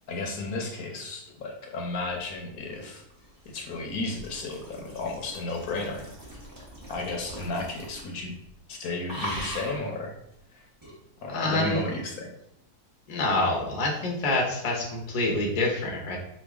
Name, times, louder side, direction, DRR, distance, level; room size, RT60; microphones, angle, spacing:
voice 1, 0.1-3.0 3.5-6.1 6.9-8.3 8.7-10.2 10.5-10.7 11.2-12.3, left 3 dB, 70° left, 1 dB, 1.1 m, -33 dB
sound 1, 2.5-8.2 8.5-8.7 9.1-9.9 10.8-11.0, equal, 15° right, 0.8 m, -40 dB
voice 2, 11.3-11.8 13.1-16.2, left 2 dB, 35° left, -1 dB, 0.6 m, -26 dB
5.4 x 2.3 x 3.4 m, 0.80 s
omnidirectional pair, 1.7 m